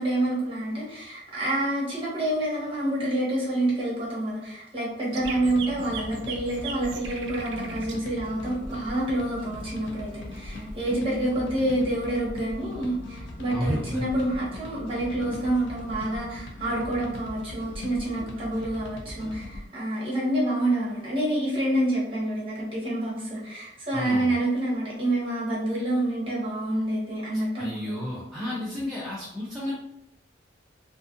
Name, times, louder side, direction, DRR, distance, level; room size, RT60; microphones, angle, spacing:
voice 1, 0.0-29.0, right 1 dB, 30° right, -5 dB, 0.9 m, -28 dB
sound 1, 5.1-19.7, left 1 dB, 70° left, 0.4 m, -39 dB
sound 2, 5.1-7.9 10.3-10.8, right 6 dB, 65° right, 0.4 m, -38 dB
voice 2, 13.5-14.1 23.9-24.4 27.6-29.7, equal, ahead, -9 dB, 0.4 m, -31 dB
2.6 x 2.4 x 2.4 m, 0.80 s
head